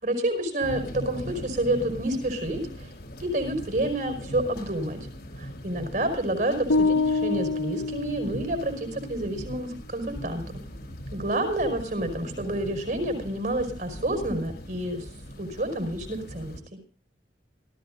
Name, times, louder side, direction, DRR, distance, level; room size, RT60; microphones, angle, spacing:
voice 1, 0.0-2.9 3.2-5.1 5.4-10.4 11.1-15.0 15.4-16.8, right 1 dB, 50° right, 6 dB, 5.2 m, -29 dB
sound 1, 0.6-16.6, equal, 65° left, 3.3 m, -40 dB
sound 2, 6.7-8.9, left 3 dB, 90° left, 1.3 m, -26 dB
28.0 x 14.5 x 2.6 m, 0.34 s
head